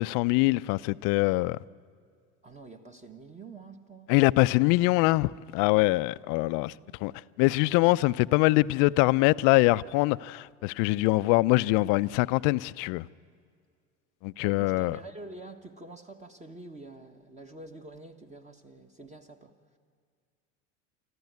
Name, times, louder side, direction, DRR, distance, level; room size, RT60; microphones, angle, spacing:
voice 1, 0.0-1.6 4.1-6.7 7.0-7.1 7.4-13.1 14.2-15.0, left 21 dB, 55° left, 0.6 m, -23 dB
voice 2, 2.4-4.1 6.7-7.0 11.4-11.6 14.4-19.5, right 2 dB, 20° right, 1.5 m, -47 dB
25.5 x 14.5 x 9.4 m
hypercardioid pair, 90°, 37 cm